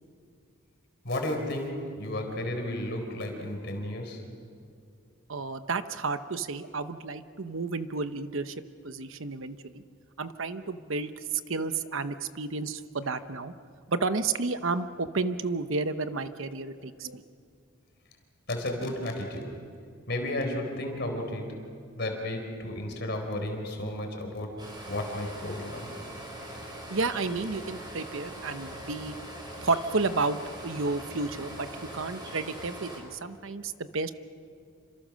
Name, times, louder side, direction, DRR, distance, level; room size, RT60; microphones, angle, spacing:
voice 1, 1.0-4.3 18.5-19.7 20.1-25.9, left 1 dB, 50° left, 3 dB, 4.4 m, -33 dB
voice 2, 5.3-9.8 10.2-13.5 13.9-17.2 26.9-29.2 29.6-31.7 31.9-34.1, right 3 dB, 70° right, 10 dB, 0.9 m, -31 dB
sound 1, 24.6-33.0, right 1 dB, 20° right, 5.1 m, -42 dB
28.5 x 26.0 x 6.4 m, 2.3 s
head